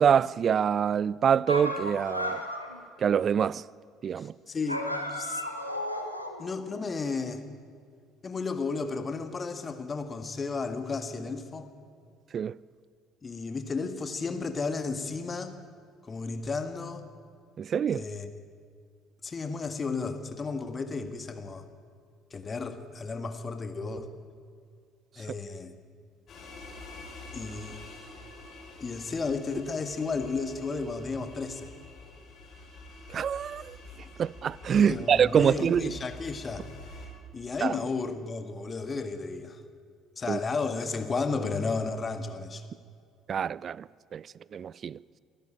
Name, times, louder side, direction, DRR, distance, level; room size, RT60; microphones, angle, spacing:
voice 1, 0.0-2.4 3.0-3.6 4.0-4.3 12.3-12.5 17.6-18.0 33.1-33.8 34.2-35.9 37.6-37.7 40.3-40.4 43.3-43.8 44.1-44.2 44.5-45.0, right 8 dB, 40° right, 0.4 m, -25 dB
sound 1, 1.5-2.8 4.7-6.5, left 1 dB, 90° left, 1.4 m, -33 dB
voice 2, 4.2-5.4 6.4-7.4 8.2-11.7 13.2-15.6 16.0-17.1 17.9-18.3 19.2-21.7 22.3-24.1 25.2-25.8 27.3-27.8 28.8-31.7 34.8-36.7 37.3-39.6 40.2-42.6, left 4 dB, 30° left, 1.8 m, -33 dB
sound 2, 26.3-37.1, left 2 dB, 45° left, 4.6 m, -47 dB
23.0 x 13.0 x 8.9 m
figure-of-eight pair, 55°, 0 cm